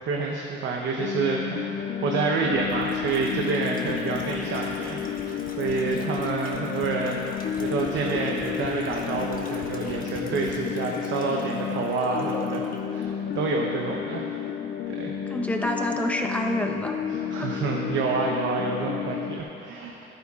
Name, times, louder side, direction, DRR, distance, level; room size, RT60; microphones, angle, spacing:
voice 1, 0.0-1.8 2.0-5.0 5.2-14.3 14.9-15.1 17.3-20.0, right 4 dB, 75° right, -1 dB, 0.9 m, -28 dB
sound 1, 1.0-19.4, left 8 dB, 60° left, 0.5 m, -32 dB
sound 2, 2.4-12.8 13.1-13.2, left 3 dB, 45° left, 1.2 m, -42 dB
voice 2, 3.8-4.2 13.9-14.2 15.3-17.0 17.4-17.6, left 1 dB, 5° left, 1 dB, 1.0 m, -29 dB
14.0 x 12.0 x 2.4 m, 3.0 s
cardioid pair, 90°, 20 cm